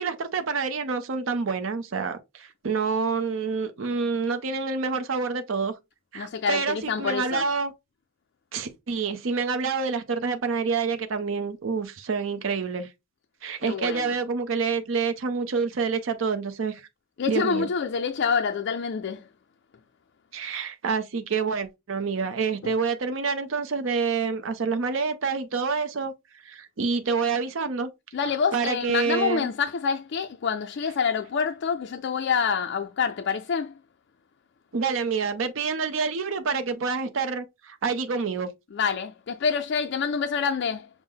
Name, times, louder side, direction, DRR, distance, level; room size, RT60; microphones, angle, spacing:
voice 1, 0.0-5.7 6.1-7.7 8.5-12.9 13.4-16.8 17.3-17.7 20.3-26.1 26.4-27.9 28.5-29.5 34.7-38.5, right 5 dB, 85° right, 0.6 m, -27 dB
voice 2, 6.2-7.5 13.6-14.1 17.2-19.3 22.6-22.7 28.1-33.8 38.7-40.9, left 6 dB, 60° left, 0.4 m, -27 dB
6.0 x 2.1 x 3.6 m
head